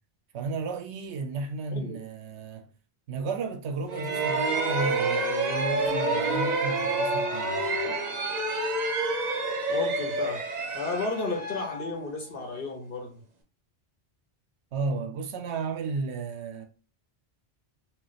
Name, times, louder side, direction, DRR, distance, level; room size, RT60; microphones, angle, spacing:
voice 1, 0.3-2.7 3.1-7.8 14.7-16.7, right 4 dB, 85° right, 0.9 m, -33 dB
sound 1, 3.9-12.6, right 2 dB, 45° right, 0.7 m, -28 dB
voice 2, 9.7-10.4 10.7-13.2, left 3 dB, 60° left, 1.1 m, -33 dB
2.4 x 2.2 x 3.9 m
omnidirectional pair, 1.1 m